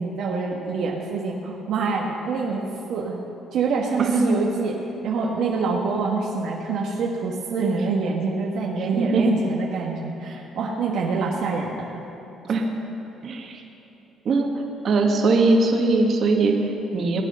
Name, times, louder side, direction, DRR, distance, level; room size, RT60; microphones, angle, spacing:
voice 1, 0.0-2.6 2.9-3.2 3.5-4.8 5.0-11.8 12.5-12.6, right 4 dB, 70° right, -2 dB, 1.5 m, -26 dB
voice 2, 4.0-4.3 8.8-9.3 12.5-12.7 13.2-13.6 14.3-14.5 14.8-17.2, right 3 dB, 50° right, 1 dB, 1.9 m, -21 dB
20.5 x 9.1 x 5.6 m, 3.0 s
cardioid pair, 105°, 0 cm